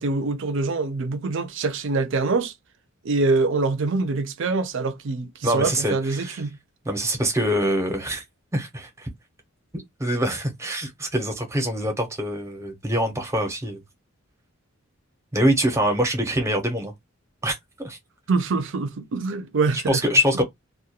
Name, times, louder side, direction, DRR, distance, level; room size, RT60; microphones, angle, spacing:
voice 1, 0.0-2.5 3.0-6.5 18.3-20.0, right 3 dB, 60° right, 0.5 m, -24 dB
voice 2, 5.4-6.4 6.8-8.2 8.5-9.1 9.7-13.8 15.3-16.9 17.4-18.0 19.9-20.4, equal, 15° right, 0.6 m, -24 dB
2.3 x 2.1 x 2.7 m
head